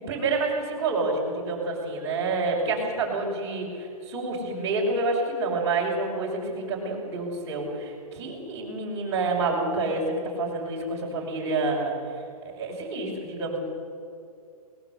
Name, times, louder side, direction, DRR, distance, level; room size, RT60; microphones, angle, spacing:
voice 1, 0.1-11.9 12.5-13.6, right 3 dB, 15° right, -5 dB, 5.8 m, -28 dB
21.0 x 20.0 x 8.0 m, 2.4 s
hypercardioid pair, 170°, 20 cm